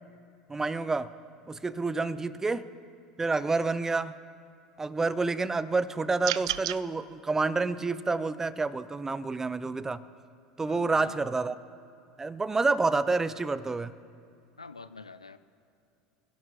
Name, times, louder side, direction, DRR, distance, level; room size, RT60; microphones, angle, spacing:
voice 1, 0.5-1.1 1.5-2.6 3.2-4.2 4.8-10.0 10.6-11.6 12.2-13.9, right 3 dB, 15° right, 15 dB, 0.6 m, -28 dB
sound 1, 6.2-6.8, right 14 dB, 65° right, 0.4 m, -30 dB
voice 2, 10.7-11.3 14.6-15.4, left 4 dB, 85° left, 13 dB, 0.5 m, -46 dB
29.5 x 16.5 x 2.5 m, 2.4 s
figure-of-eight pair, 75°, 3 cm